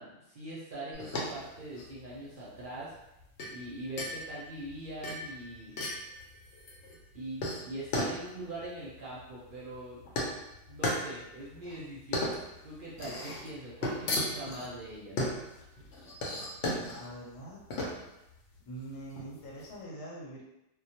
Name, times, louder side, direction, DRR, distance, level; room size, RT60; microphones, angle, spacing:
voice 1, 0.0-2.9 3.5-5.7 7.1-10.0 10.7-12.3 12.6-15.2, right 1 dB, 55° right, -7 dB, 0.6 m, -42 dB
sound 1, 0.9-19.7, left 1 dB, 70° left, 0.8 m, -37 dB
voice 2, 16.7-17.6 18.6-20.4, right 1 dB, 85° left, -4 dB, 1.1 m, -44 dB
2.2 x 2.1 x 2.7 m, 0.90 s
omnidirectional pair, 1.3 m